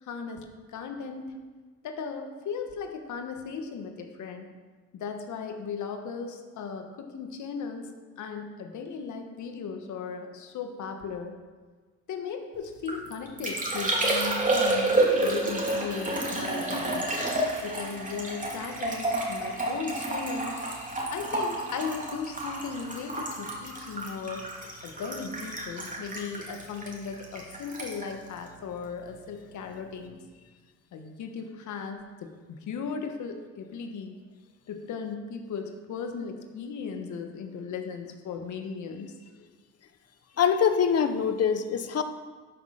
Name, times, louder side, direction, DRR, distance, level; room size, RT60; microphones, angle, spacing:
voice 1, 0.0-0.4 0.7-1.4 1.8-4.5 4.9-11.4 12.1-17.1 17.6-20.6 21.1-24.5 24.8-30.2 30.9-34.2 34.7-39.1, left 5 dB, 75° left, 5 dB, 1.3 m, -37 dB
Liquid, 12.6-29.3 29.5-30.1, right 2 dB, 25° right, 2.7 m, -30 dB
voice 2, 40.4-42.0, left 7 dB, 55° left, 9 dB, 1.0 m, -24 dB
12.5 x 6.5 x 5.6 m, 1.4 s
cardioid pair, 90°, 30 cm